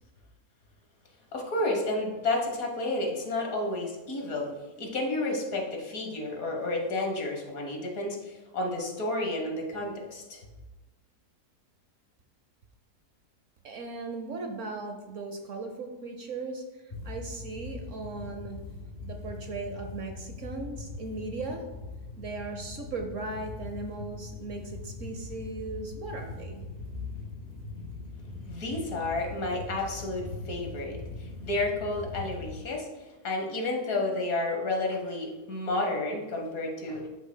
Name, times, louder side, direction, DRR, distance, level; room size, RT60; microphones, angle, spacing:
voice 1, 1.3-4.5 4.8-10.4 28.5-32.9 33.2-37.1, left 2 dB, 60° left, 1 dB, 1.7 m, -31 dB
voice 2, 13.6-18.6 19.0-21.6 22.2-26.6, right 3 dB, 60° right, 5 dB, 1.0 m, -38 dB
sound 1, 16.9-32.6, left 3 dB, 35° left, 2.0 m, -41 dB
12.5 x 6.0 x 2.2 m, 1.1 s
omnidirectional pair, 1.7 m